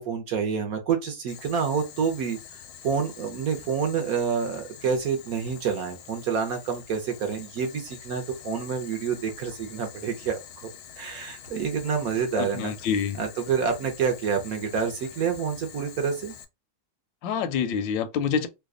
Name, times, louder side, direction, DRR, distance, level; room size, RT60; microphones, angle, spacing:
voice 1, 0.0-2.4 2.8-10.4 11.0-12.7 13.2-16.3, right 6 dB, 65° right, 1.0 m, -28 dB
Boiling, 1.3-16.4, left 9 dB, 70° left, 0.9 m, -46 dB
voice 2, 12.4-13.2 17.2-18.5, left 7 dB, 85° left, 1.3 m, -27 dB
3.3 x 2.1 x 3.6 m
omnidirectional pair, 2.0 m